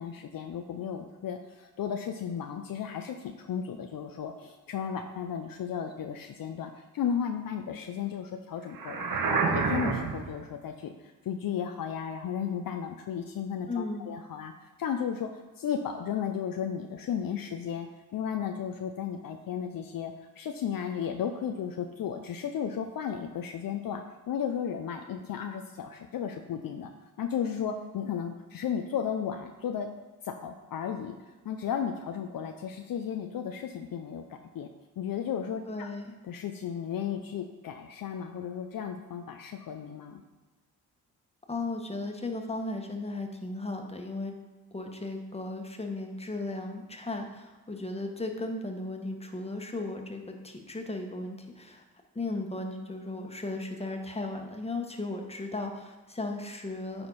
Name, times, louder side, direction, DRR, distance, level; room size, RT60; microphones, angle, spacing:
voice 1, 0.0-9.0 9.3-15.3 15.6-26.9 27.2-29.9 30.2-34.7 35.0-35.9 36.2-40.2, left 8 dB, 55° left, 5 dB, 0.7 m, -34 dB
sound 1, 8.7-10.4, right 4 dB, 55° right, 1.2 m, -28 dB
voice 2, 13.7-14.1 35.7-36.1 41.5-44.3 44.7-51.8 52.1-57.1, left 2 dB, 15° left, 3 dB, 1.5 m, -36 dB
9.6 x 4.3 x 4.2 m, 1.2 s
hypercardioid pair, 45°, 40 cm